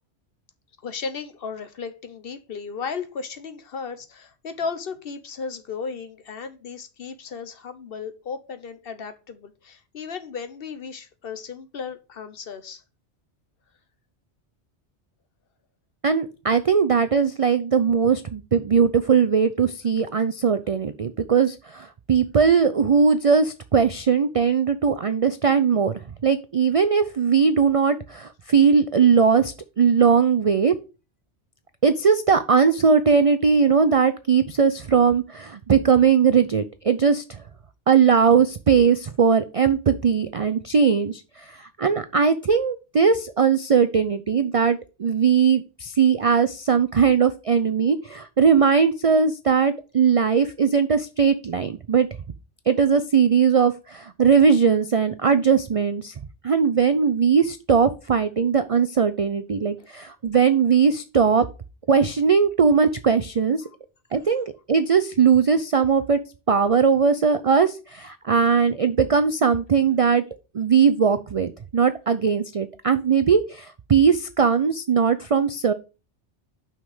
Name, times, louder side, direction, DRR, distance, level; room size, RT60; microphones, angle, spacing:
voice 1, 0.8-12.8 59.8-59.9 63.6-63.7, left 5 dB, 55° left, 1.1 m, -35 dB
voice 2, 16.0-30.7 31.8-37.4 37.9-52.1 52.7-56.1 56.4-61.4 61.9-63.6 64.1-66.2 66.5-70.2 70.5-75.7, right 6 dB, 55° right, 0.4 m, -19 dB
6.2 x 5.9 x 4.9 m
omnidirectional pair, 1.2 m